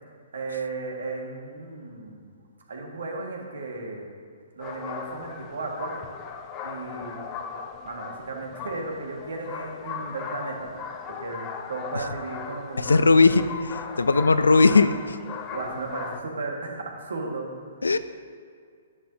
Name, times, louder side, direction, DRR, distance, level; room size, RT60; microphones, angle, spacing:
voice 1, 0.3-2.3 2.7-4.1 4.5-5.9 6.6-7.2 7.8-12.9 15.5-17.5, right 3 dB, 75° right, 0 dB, 1.8 m, -35 dB
sound 1, 4.6-16.2, left 6 dB, 30° left, 0.7 m, -38 dB
voice 2, 12.8-13.5 14.0-15.2 17.8-18.0, left 3 dB, 90° left, 13 dB, 0.4 m, -18 dB
10.5 x 8.5 x 2.8 m, 2.1 s
hypercardioid pair, 130°, 0 cm